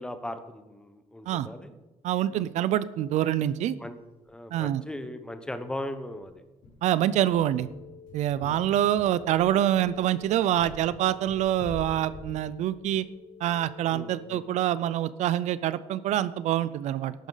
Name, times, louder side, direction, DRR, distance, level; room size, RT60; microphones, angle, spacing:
voice 1, 0.0-1.7 2.3-2.4 3.8-4.0 4.3-6.4 8.4-8.6 13.9-14.4, left 1 dB, 5° left, 9 dB, 0.9 m, -38 dB
voice 2, 2.0-3.8 4.5-4.8 6.8-7.7 8.1-13.1 13.4-17.1, right 12 dB, 65° right, 16 dB, 0.5 m, -26 dB
sound 1, 3.7-3.8 4.1-4.2 4.6-4.7 5.1-5.2 5.6-14.1, left 2 dB, 85° left, 4.0 m, -47 dB
sound 2, 7.5-14.8, left 7 dB, 45° left, 1.8 m, -51 dB
14.0 x 11.5 x 4.0 m, 1.1 s
cardioid pair, 155°, 13 cm